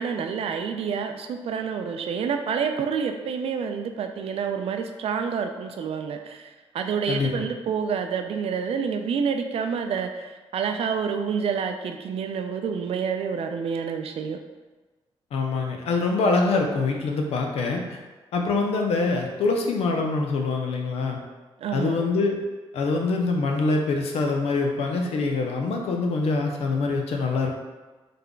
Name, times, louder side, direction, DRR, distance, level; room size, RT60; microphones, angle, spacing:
voice 1, 0.0-14.4 21.6-21.9, right 6 dB, 70° right, 6 dB, 0.4 m, -28 dB
voice 2, 7.1-7.5 15.3-18.0 18.3-21.2 21.7-22.4 22.7-27.5, left 3 dB, 85° left, 2 dB, 0.5 m, -24 dB
3.3 x 2.2 x 3.7 m, 1.3 s
cardioid pair, 80°, 10 cm